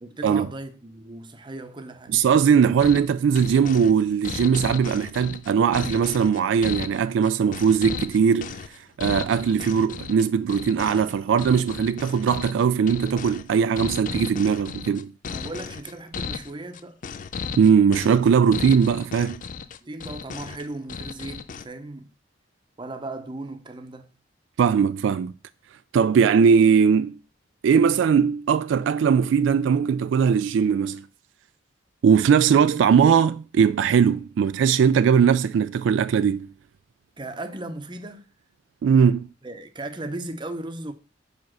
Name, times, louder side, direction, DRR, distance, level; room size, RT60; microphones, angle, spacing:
voice 1, 0.0-2.2 15.3-17.0 19.8-22.1 22.8-24.1 37.2-38.3 39.4-40.9, right 2 dB, 25° right, 0.7 m, -36 dB
voice 2, 2.1-8.6 9.0-15.1 17.6-19.4 24.6-25.3 25.9-27.2 27.6-31.0 32.0-36.5 38.8-39.3, right 7 dB, 75° right, 0.3 m, -20 dB
sound 1, 2.8-21.7, left 6 dB, 45° left, 0.4 m, -35 dB
5.2 x 4.9 x 6.0 m
head